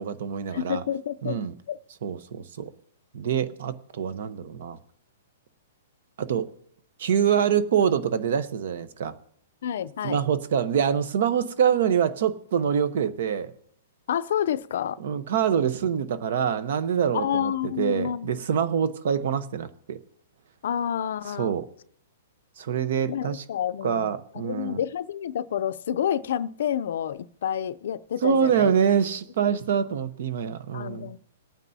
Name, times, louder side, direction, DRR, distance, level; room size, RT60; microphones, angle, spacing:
voice 1, 0.0-0.8 1.2-1.5 2.0-2.7 3.1-4.8 6.2-6.5 7.0-9.2 10.0-13.5 15.0-20.0 21.4-21.7 22.6-23.4 23.8-24.8 28.2-31.2, right 8 dB, 60° right, 0.9 m, -25 dB
voice 2, 0.5-1.4 1.7-1.8 9.6-10.3 14.1-15.0 17.1-18.4 20.6-21.5 23.1-24.1 24.3-28.7 30.7-31.2, left 9 dB, 65° left, 0.5 m, -29 dB
26.5 x 9.1 x 2.7 m
hypercardioid pair, 160°, 0 cm